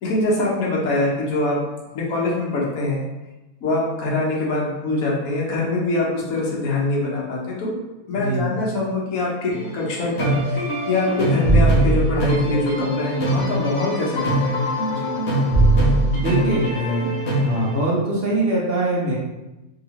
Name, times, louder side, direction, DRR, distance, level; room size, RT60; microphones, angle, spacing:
voice 1, 0.0-1.6 1.9-3.1 3.6-7.7 8.1-14.6 14.9-15.2, left 2 dB, 75° left, -3 dB, 1.2 m, -24 dB
voice 2, 8.2-8.5 16.1-19.2, right 1 dB, 50° right, -5 dB, 0.8 m, -23 dB
sound 1, 9.5-17.8, right 1 dB, 55° left, 0.9 m, -21 dB
3.0 x 2.8 x 2.9 m, 1.0 s
omnidirectional pair, 1.5 m